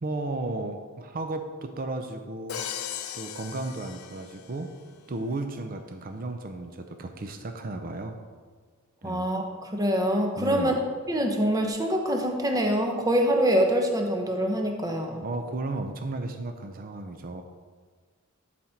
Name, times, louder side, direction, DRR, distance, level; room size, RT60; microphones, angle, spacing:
voice 1, 0.0-2.6 3.1-4.7 5.1-8.2 9.0-9.3 10.4-10.8 15.2-17.4, right 2 dB, 40° right, 6 dB, 0.6 m, -34 dB
Crash cymbal, 2.5-4.7, left 9 dB, 70° left, 0.5 m, -37 dB
voice 2, 9.0-9.4 9.7-10.7 11.1-15.2, equal, 15° right, 2 dB, 0.9 m, -25 dB
11.0 x 4.3 x 4.5 m, 1.6 s
head